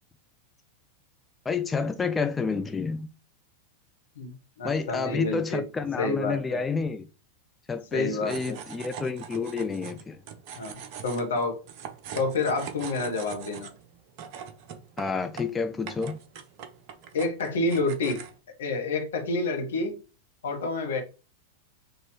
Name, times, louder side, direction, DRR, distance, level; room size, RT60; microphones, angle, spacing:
voice 1, 1.5-3.1 4.6-7.1 7.7-10.2 15.0-16.2, left 5 dB, 15° left, 0.3 m, -29 dB
voice 2, 4.2-5.6 6.0-6.6 7.9-8.6 10.6-11.5 12.1-13.7 17.1-18.2 18.6-20.0 20.4-21.0, left 2 dB, 65° left, 1.2 m, -29 dB
sound 1, 8.3-18.4, right 8 dB, 45° right, 0.6 m, -43 dB
6.3 x 2.6 x 3.1 m
figure-of-eight pair, 90°, 0 cm